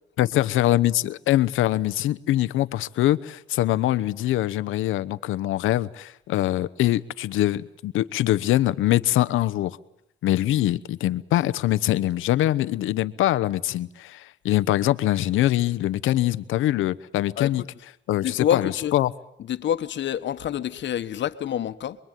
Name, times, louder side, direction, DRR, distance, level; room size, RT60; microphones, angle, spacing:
voice 1, 0.2-9.8 10.2-17.6 18.1-19.1, left 14 dB, 85° left, 1.0 m, -23 dB
voice 2, 18.2-18.9 19.5-22.0, left 10 dB, 65° left, 1.4 m, -27 dB
27.0 x 22.0 x 9.2 m
cardioid pair, 90°, 20 cm